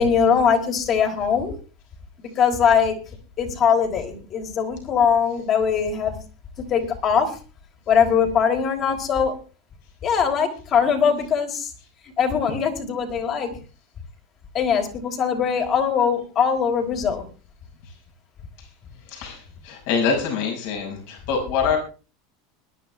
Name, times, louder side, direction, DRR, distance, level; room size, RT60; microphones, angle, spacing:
voice 1, 0.0-1.5 2.2-3.0 3.4-6.1 6.7-7.3 7.9-9.3 10.0-11.7 12.2-13.5 14.5-17.2, left 7 dB, 45° left, 3 dB, 4.0 m, -21 dB
voice 2, 19.6-21.8, left 6 dB, 65° left, 2 dB, 6.1 m, -24 dB
22.0 x 10.5 x 3.4 m, 0.35 s
hypercardioid pair, 95°, 0 cm